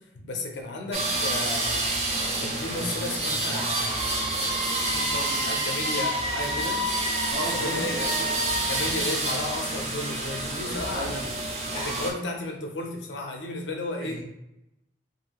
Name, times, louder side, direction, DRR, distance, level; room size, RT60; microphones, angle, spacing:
voice 1, 0.0-1.9 2.4-4.7 5.4-6.8 7.5-8.1 8.7-11.2 11.7-14.2, left 2 dB, 80° left, 2 dB, 0.6 m, -34 dB
sound 1, 0.9-12.1, right 1 dB, 35° right, 0.5 m, -28 dB
voice 2, 4.6-5.4 7.2-8.3 10.6-11.2 14.0-14.2, equal, 60° right, -4 dB, 1.1 m, -36 dB
2.7 x 2.7 x 2.9 m, 0.87 s
head